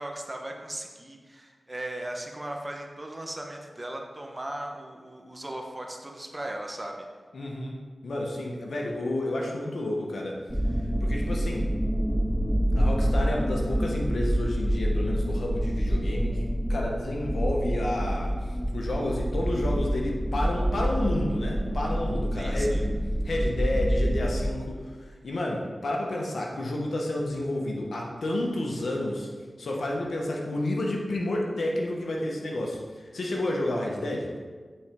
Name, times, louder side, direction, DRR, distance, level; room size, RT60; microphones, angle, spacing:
voice 1, 0.0-7.0 22.3-22.8, right 1 dB, 30° right, 2 dB, 1.0 m, -37 dB
voice 2, 7.3-10.4 11.0-11.7 12.7-16.4 16.7-18.3 18.7-22.7 23.2-24.8 25.2-29.3 29.6-34.3, left 1 dB, 80° left, -1 dB, 1.0 m, -30 dB
sound 1, 10.5-24.5, equal, ahead, 0.5 m, -27 dB
8.5 x 4.3 x 3.6 m, 1.5 s
cardioid pair, 40°, 0 cm